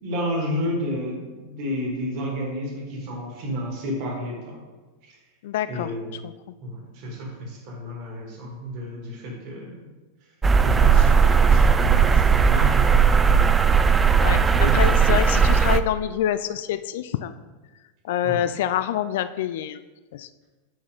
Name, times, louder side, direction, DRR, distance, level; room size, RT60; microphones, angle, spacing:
voice 1, 0.0-4.6 5.0-5.2 5.7-6.2 6.6-9.9 10.6-13.2 13.7-13.8 14.6-14.8 15.1-15.2 18.2-18.4, equal, 50° right, -1 dB, 2.3 m, -31 dB
voice 2, 5.4-5.9 6.2-6.6 14.2-14.4 14.7-17.3 18.0-19.8 20.1-20.3, left 10 dB, 60° left, 13 dB, 0.3 m, -26 dB
sound 1, 10.4-15.8, right 6 dB, 15° right, 0.4 m, -17 dB
8.3 x 6.2 x 3.6 m, 1.3 s
figure-of-eight pair, 90°, 0 cm